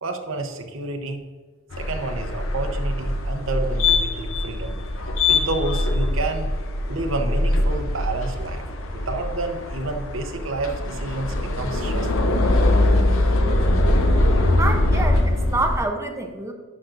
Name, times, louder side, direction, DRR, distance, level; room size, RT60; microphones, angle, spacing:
voice 1, 0.0-1.2 1.8-4.8 5.3-6.5 6.9-8.6 8.9-12.1, right 2 dB, 75° right, 4 dB, 0.9 m, -29 dB
sound 1, 1.7-15.8, left 2 dB, 85° left, 0.7 m, -22 dB
voice 2, 14.6-16.5, right 2 dB, 15° right, 3 dB, 0.7 m, -26 dB
10.5 x 6.0 x 2.6 m, 1.4 s
head